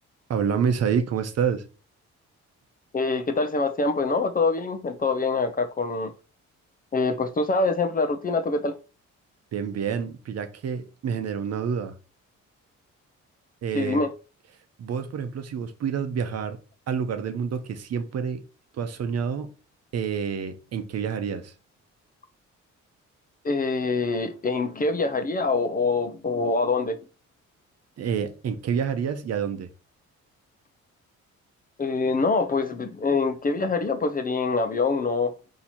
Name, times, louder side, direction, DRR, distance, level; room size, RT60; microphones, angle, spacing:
voice 1, 0.3-1.6 9.5-11.9 13.6-14.0 14.8-16.6 16.9-18.4 18.8-19.5 19.9-21.5 28.0-29.7, right 7 dB, 55° right, 0.8 m, -28 dB
voice 2, 2.9-6.1 6.9-8.7 13.7-14.1 23.4-27.0 31.8-35.3, left 3 dB, 30° left, 0.6 m, -25 dB
4.1 x 2.9 x 4.3 m
cardioid pair, 90°, 30 cm